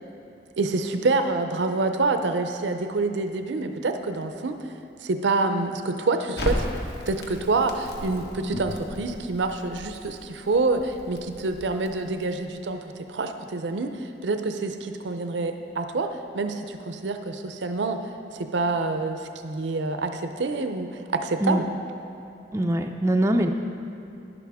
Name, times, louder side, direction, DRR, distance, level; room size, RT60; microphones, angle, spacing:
voice 1, 0.6-4.5 5.0-6.7 7.1-12.8 13.1-16.1 16.3-18.0 18.5-21.7, right 3 dB, 85° right, 7 dB, 0.5 m, -27 dB
Crackle, 6.4-12.5, equal, 65° left, 1.2 m, -35 dB
voice 2, 22.5-23.5, right 1 dB, 15° right, 4 dB, 0.3 m, -22 dB
11.0 x 11.0 x 3.5 m, 2.9 s
head